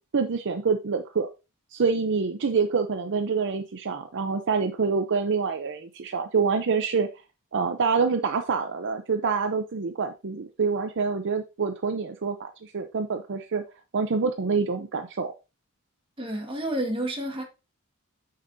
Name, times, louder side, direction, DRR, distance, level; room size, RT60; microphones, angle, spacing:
voice 1, 0.1-1.3 1.7-7.1 7.5-13.6 13.9-15.3, right 5 dB, 55° right, 0.6 m, -26 dB
voice 2, 16.2-17.4, right 1 dB, 25° right, 1.7 m, -30 dB
8.8 x 6.6 x 2.7 m
head